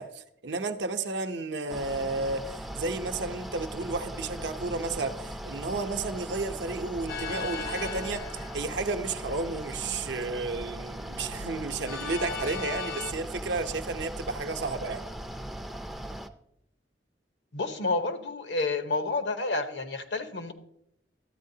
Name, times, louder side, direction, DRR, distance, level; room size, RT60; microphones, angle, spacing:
voice 1, 0.0-15.0, right 3 dB, 70° right, 0.7 m, -32 dB
Mechanical fan, 1.7-16.3, right 1 dB, ahead, 0.4 m, -39 dB
sound 1, 7.1-9.2 11.9-13.1, left 5 dB, 55° left, 0.6 m, -37 dB
voice 2, 17.5-20.5, left 3 dB, 75° left, 0.9 m, -30 dB
13.0 x 9.0 x 2.7 m
head